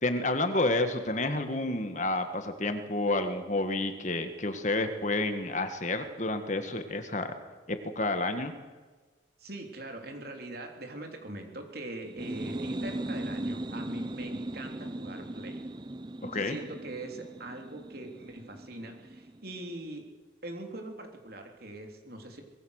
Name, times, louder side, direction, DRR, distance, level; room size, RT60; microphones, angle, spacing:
voice 1, 0.0-7.3 7.7-8.5 16.2-16.6, left 2 dB, 40° left, 8 dB, 1.7 m, -30 dB
voice 2, 9.4-15.6 16.4-20.1 20.4-22.4, right 1 dB, 50° right, 3 dB, 3.3 m, -42 dB
sound 1, 12.0-19.6, right 1 dB, 25° right, 0.6 m, -38 dB
24.0 x 20.5 x 6.6 m, 1.3 s
head